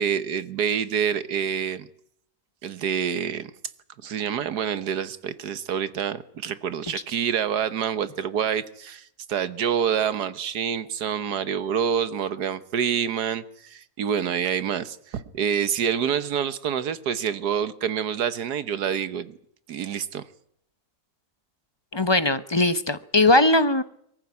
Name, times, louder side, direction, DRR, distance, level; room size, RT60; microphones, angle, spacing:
voice 1, 0.0-1.9 2.6-3.5 4.0-19.4 19.7-20.2, right 8 dB, 80° right, 14 dB, 1.6 m, -27 dB
voice 2, 21.9-23.8, left 2 dB, 25° left, 13 dB, 0.7 m, -20 dB
23.5 x 15.0 x 9.7 m, 0.71 s
omnidirectional pair, 1.7 m